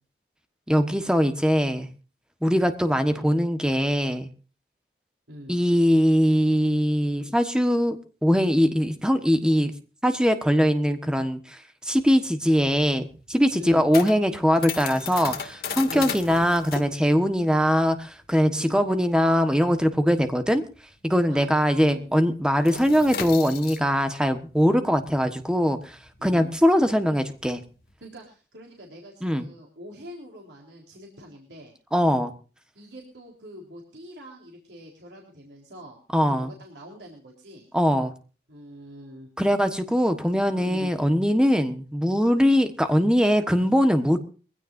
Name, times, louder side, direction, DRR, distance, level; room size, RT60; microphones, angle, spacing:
voice 1, 0.7-1.9 2.4-4.3 5.5-8.0 8.2-9.7 10.0-20.6 21.0-27.6 29.2-29.4 31.9-32.3 36.1-36.5 37.7-38.1 39.4-44.2, equal, 5° right, 8 dB, 1.3 m, -22 dB
sound 1, 12.4-21.4 21.6-21.9 22.2-27.9, left 6 dB, 55° left, 2.3 m, -37 dB
voice 2, 13.5-13.9 15.8-16.2 18.5-18.8 21.3-22.1 26.2-26.5 28.0-31.7 32.7-36.0 36.3-37.7 38.5-39.3 40.6-40.9, equal, 85° right, 0 dB, 3.8 m, -43 dB
23.0 x 16.0 x 2.6 m, 0.36 s
head